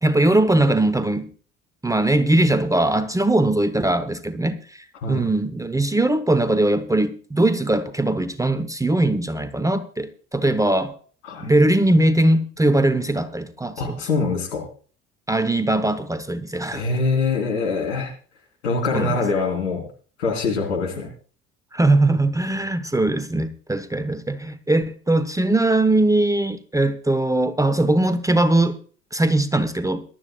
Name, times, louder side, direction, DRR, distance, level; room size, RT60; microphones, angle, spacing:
voice 1, 0.0-1.3 1.8-10.9 11.4-14.1 15.3-16.8 18.9-19.2 21.7-28.8 29.1-30.0, right 2 dB, 10° right, 0.9 m, -20 dB
voice 2, 13.8-14.6 16.7-18.1 18.6-19.9 20.2-21.1, left 4 dB, 75° left, 3.5 m, -24 dB
22.0 x 12.0 x 2.3 m
figure-of-eight pair, 55°, 36 cm